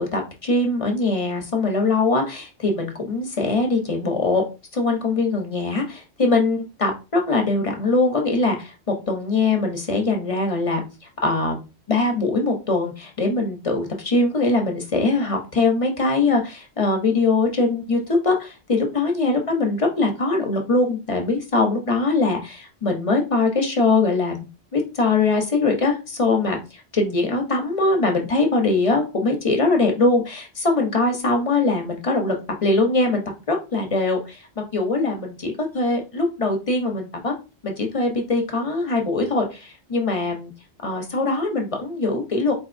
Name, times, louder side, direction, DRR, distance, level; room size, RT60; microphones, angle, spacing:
voice 1, 0.0-4.4 4.7-8.6 8.9-10.8 11.2-11.6 11.9-24.4 24.7-26.6 26.9-32.4 32.6-34.4 34.7-37.3 37.6-40.5 40.8-42.5, left 3 dB, 35° left, 2 dB, 0.8 m, -22 dB
4.4 x 3.0 x 2.5 m, 0.29 s
omnidirectional pair, 1.1 m